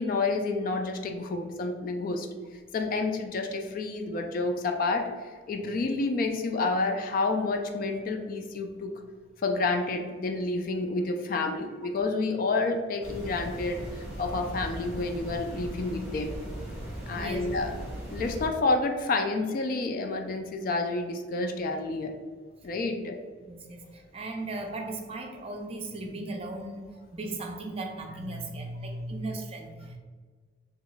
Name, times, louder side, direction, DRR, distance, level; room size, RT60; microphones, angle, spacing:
voice 1, 0.0-2.3 2.7-8.9 9.4-16.4 17.1-17.7 18.1-22.1 22.6-23.2 28.3-29.3 29.8-30.0, left 3 dB, 45° left, 4 dB, 0.3 m, -29 dB
sound 1, 13.0-18.5, equal, 5° right, 1.1 m, -38 dB
voice 2, 17.2-17.5 23.4-26.8 27.1-30.0, right 2 dB, 30° right, 2 dB, 0.4 m, -37 dB
2.9 x 2.2 x 3.9 m, 1.5 s
head